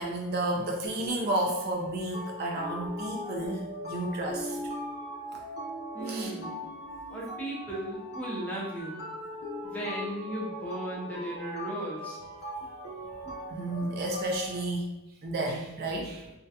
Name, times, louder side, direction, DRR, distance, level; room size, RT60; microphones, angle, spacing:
voice 1, 0.0-4.6 5.3-5.4 6.1-6.3 13.5-14.9 15.2-16.2, right 1 dB, 50° right, 1 dB, 0.3 m, -31 dB
sound 1, 0.8-14.6, equal, 50° left, 0.6 m, -40 dB
voice 2, 5.9-6.6 7.1-9.0 9.6-12.2, right 1 dB, 5° left, -6 dB, 0.6 m, -36 dB
2.3 x 2.1 x 2.6 m, 0.98 s
head